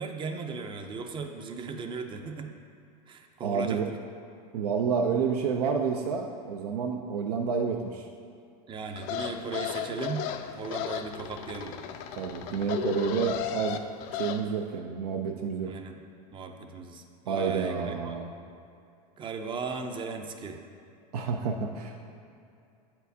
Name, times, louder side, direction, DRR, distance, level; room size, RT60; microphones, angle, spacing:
voice 1, 0.0-2.5 3.1-4.0 8.7-11.8 15.6-16.0 16.3-18.2 19.2-20.6, right 4 dB, 25° right, 5 dB, 0.5 m, -37 dB
voice 2, 3.4-3.9 4.5-8.1 12.2-13.8 14.1-15.7 17.3-18.3 21.1-22.1, right 6 dB, 80° right, 3 dB, 0.4 m, -29 dB
sound 1, 9.0-14.4, left 9 dB, 45° left, 0.4 m, -34 dB
8.0 x 4.4 x 2.7 m, 2.5 s
hypercardioid pair, 110°, 20 cm